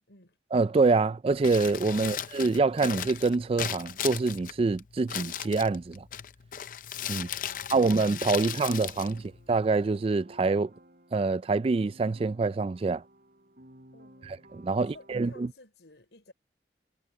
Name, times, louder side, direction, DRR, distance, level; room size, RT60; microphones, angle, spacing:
voice 1, 0.0-0.4 7.1-9.3 13.9-16.3, left 2 dB, 80° left, 5.2 m, -56 dB
voice 2, 0.5-6.0 7.1-7.3 7.7-9.2 9.5-10.7 11.1-13.0 14.2-15.5, right 3 dB, 35° right, 0.3 m, -26 dB
Crumpling crinkling, 1.3-9.9, left 10 dB, 50° left, 0.5 m, -37 dB
sound 1, 8.1-15.5, right 1 dB, 55° right, 4.3 m, -56 dB
head